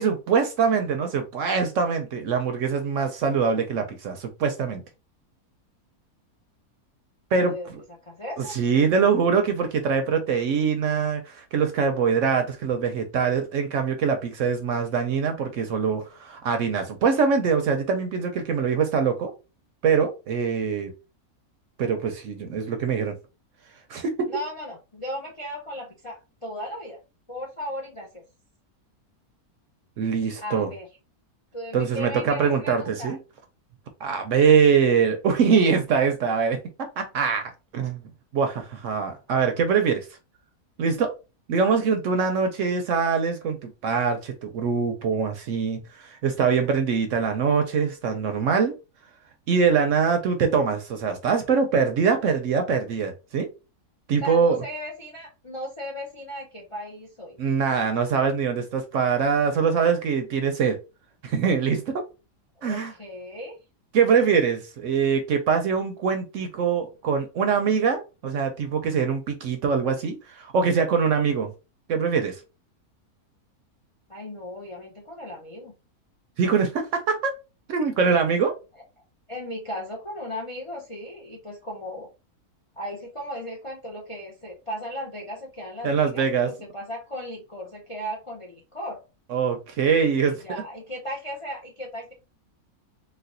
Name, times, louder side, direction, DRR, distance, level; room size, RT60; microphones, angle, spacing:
voice 1, 0.0-4.8 7.3-7.8 8.4-19.3 19.8-20.9 21.8-23.2 23.9-24.3 30.0-30.7 31.7-33.2 34.0-36.6 37.0-38.0 38.3-40.1 40.8-41.1 41.5-48.7 49.5-53.5 54.1-54.6 57.4-60.8 61.2-62.0 62.6-62.9 63.9-71.5 71.9-72.4 76.4-77.3 77.7-78.5 85.8-86.5 89.3-90.4, right 6 dB, 65° right, 6 dB, 0.8 m, -23 dB
voice 2, 7.4-7.7 8.0-8.5 24.3-27.0 27.3-28.2 30.4-30.9 31.5-33.2 54.2-57.4 62.6-63.6 74.1-75.7 79.3-82.1 82.8-89.0 90.2-92.1, equal, 40° left, 0 dB, 0.4 m, -36 dB
4.1 x 2.3 x 2.5 m, 0.29 s
omnidirectional pair, 1.6 m